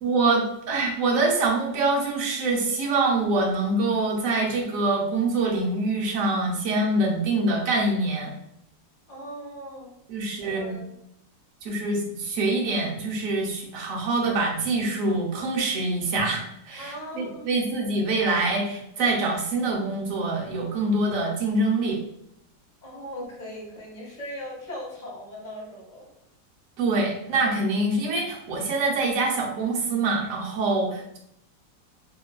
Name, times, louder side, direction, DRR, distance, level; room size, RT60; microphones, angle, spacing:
voice 1, 0.0-8.3 10.1-10.7 11.6-22.0 26.8-31.2, right 2 dB, 70° right, -1 dB, 0.8 m, -25 dB
voice 2, 9.1-9.9 10.4-10.8 16.8-17.5 22.8-26.1, equal, 40° left, -4 dB, 0.7 m, -39 dB
3.0 x 2.2 x 2.2 m, 0.76 s
omnidirectional pair, 2.0 m